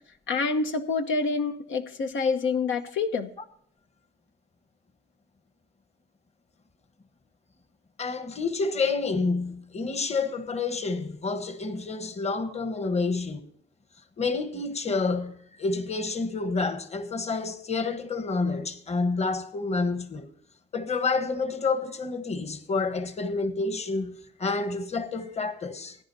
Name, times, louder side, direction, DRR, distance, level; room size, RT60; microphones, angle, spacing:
voice 1, 0.3-3.3, left 4 dB, 75° left, 1.0 m, -27 dB
voice 2, 8.0-13.4 14.2-20.3 20.7-26.0, left 4 dB, 35° left, 1.3 m, -29 dB
19.5 x 10.0 x 2.7 m
cardioid pair, 90°, 20 cm